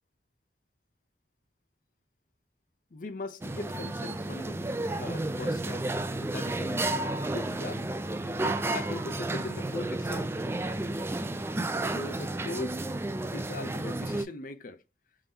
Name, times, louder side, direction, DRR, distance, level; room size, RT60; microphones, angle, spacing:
voice 1, 2.9-4.6 5.0-5.9 6.2-10.4 11.9-12.9 13.3-14.8, left 3 dB, 50° left, 0.6 m, -40 dB
sound 1, 3.4-14.2, right 2 dB, 15° right, 0.3 m, -32 dB
3.6 x 3.5 x 2.7 m
head